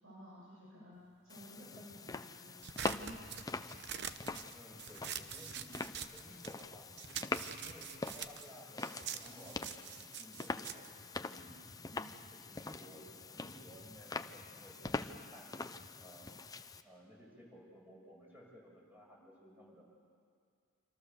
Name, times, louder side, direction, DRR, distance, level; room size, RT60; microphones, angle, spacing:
voice 1, 0.0-3.5 11.9-12.1, equal, 80° right, -6 dB, 7.7 m, -54 dB
sound 1, 1.3-16.8, left 3 dB, 20° left, 0.7 m, -44 dB
sound 2, 2.6-6.7 7.0-11.8, right 9 dB, 55° right, 0.9 m, -45 dB
voice 2, 4.5-7.1 7.5-10.9 11.2-11.5 12.3-15.5 16.0-16.3 16.8-19.8, equal, 10° right, -3 dB, 7.0 m, -57 dB
27.0 x 26.5 x 7.0 m, 2.2 s
head